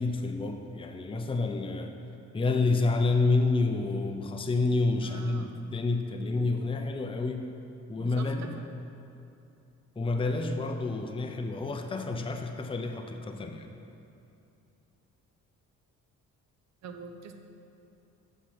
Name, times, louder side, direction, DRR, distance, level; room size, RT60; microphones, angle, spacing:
voice 1, 0.0-2.0 2.3-7.5 7.9-8.5 10.0-13.7, left 3 dB, 15° left, 5 dB, 0.6 m, -29 dB
voice 2, 5.0-5.6 8.0-8.7 11.6-11.7 16.8-17.4, right 4 dB, 60° right, 6 dB, 0.8 m, -44 dB
8.0 x 6.2 x 5.9 m, 2.7 s
cardioid pair, 90°, 30 cm